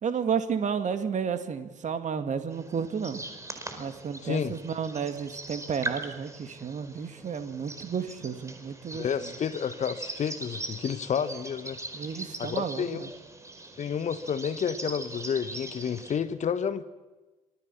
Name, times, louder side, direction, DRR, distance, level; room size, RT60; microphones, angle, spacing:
voice 1, 0.0-3.2 3.8-9.3 11.9-13.1, right 6 dB, 45° right, 8 dB, 2.4 m, -32 dB
sound 1, 2.5-16.2, right 2 dB, 15° right, 4.8 m, -41 dB
voice 2, 4.2-4.5 8.9-11.8 12.4-13.1 13.8-16.8, left 7 dB, 40° left, 12 dB, 1.4 m, -30 dB
26.5 x 20.0 x 7.3 m, 1.2 s
figure-of-eight pair, 50°, 18 cm